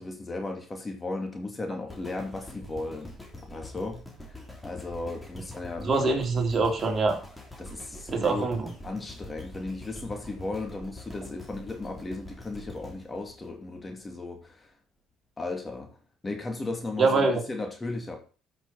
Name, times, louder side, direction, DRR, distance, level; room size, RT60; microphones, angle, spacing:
voice 1, 0.0-3.1 3.4-4.0 4.3-6.1 7.6-8.5 8.8-14.7 15.4-15.9 16.2-18.2, left 2 dB, 25° left, 3 dB, 2.6 m, -36 dB
sound 1, 1.9-14.1 14.6-14.7, left 1 dB, 10° left, 3.4 m, -45 dB
voice 2, 5.8-7.2 8.1-8.7 17.0-17.4, right 3 dB, 35° right, 2 dB, 3.2 m, -24 dB
13.0 x 6.2 x 4.3 m, 0.36 s
supercardioid pair, 70°, 0 cm